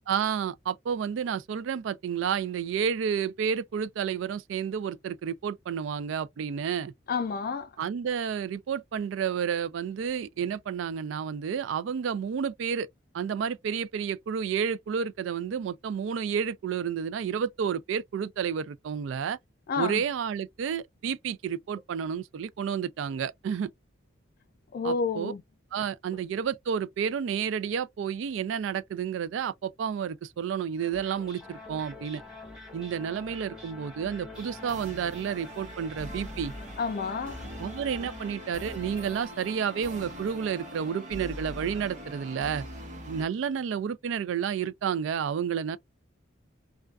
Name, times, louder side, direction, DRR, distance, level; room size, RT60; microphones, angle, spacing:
voice 1, 0.1-6.9 7.8-12.9 13.1-19.4 19.8-23.7 24.8-25.3 25.7-32.2 32.7-36.5 37.6-42.6 43.1-45.8, right 7 dB, 70° right, 0.3 m, -30 dB
voice 2, 7.1-7.7 19.7-20.0 24.7-25.4 36.8-37.5, left 4 dB, 50° left, 0.3 m, -30 dB
sound 1, 30.8-43.0, left 2 dB, 5° right, 1.0 m, -46 dB
sound 2, 34.3-43.3, right 1 dB, 40° right, 0.9 m, -43 dB
2.4 x 2.2 x 2.3 m
head